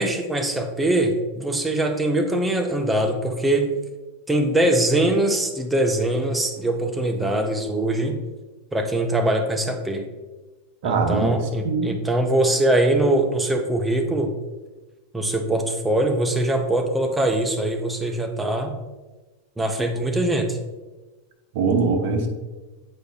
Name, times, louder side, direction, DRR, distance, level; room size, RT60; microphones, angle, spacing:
voice 1, 0.0-3.7 4.3-8.2 8.7-10.0 10.8-14.3 15.1-18.7 19.6-20.6, right 1 dB, 5° right, 4 dB, 0.5 m, -22 dB
voice 2, 10.8-11.4 11.6-11.9 21.5-22.3, right 4 dB, 55° right, 3 dB, 1.0 m, -22 dB
8.2 x 4.7 x 2.7 m, 1.2 s
supercardioid pair, 160°, 0 cm